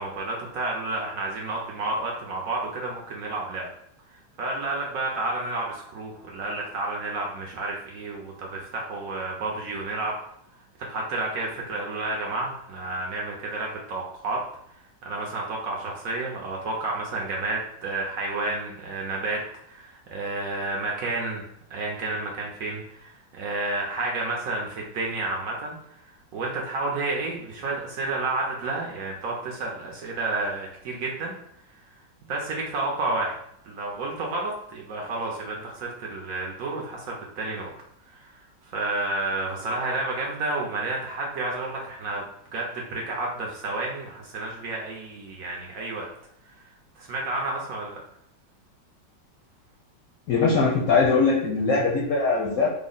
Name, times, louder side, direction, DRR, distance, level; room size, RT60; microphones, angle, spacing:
voice 1, 0.0-3.7 4.1-10.2 10.9-14.4 15.0-21.4 21.7-25.8 26.3-31.4 32.3-33.4 33.6-37.7 38.1-38.3 38.7-42.2 42.5-46.1 47.0-48.0, right 2 dB, 70° right, -2 dB, 0.8 m, -30 dB
voice 2, 50.3-52.7, left 4 dB, 70° left, -3 dB, 0.9 m, -21 dB
3.4 x 2.0 x 3.7 m, 0.72 s
omnidirectional pair, 2.0 m